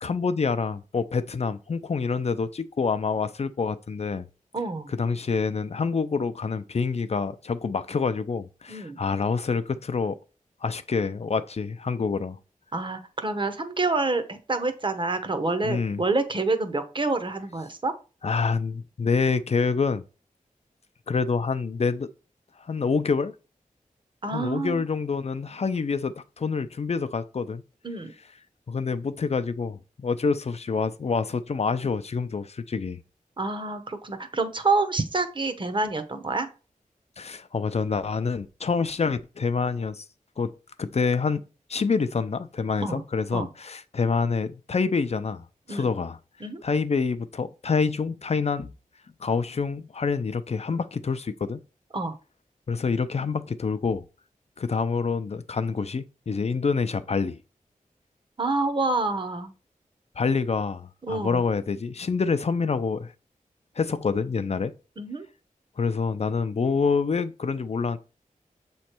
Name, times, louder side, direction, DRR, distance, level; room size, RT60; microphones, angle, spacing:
voice 1, 0.0-4.3 4.9-10.2 10.6-12.4 15.6-16.0 18.2-20.0 21.1-22.1 22.6-23.3 24.3-27.6 28.7-33.0 37.2-40.0 40.4-41.4 41.7-46.2 46.6-48.7 49.2-51.6 52.7-54.0 54.6-57.4 60.2-63.1 63.8-64.7 65.8-68.0, left 5 dB, 50° left, 0.5 m, -27 dB
voice 2, 4.5-4.9 8.7-9.0 12.7-17.9 24.2-24.8 27.8-28.1 33.4-36.5 42.8-43.0 43.3-43.5 45.7-45.9 46.4-46.6 51.9-52.2 58.4-59.5 61.0-61.4 65.0-65.2, right 3 dB, 35° right, 0.8 m, -27 dB
7.4 x 3.2 x 4.4 m
wide cardioid pair, 95°, 14 cm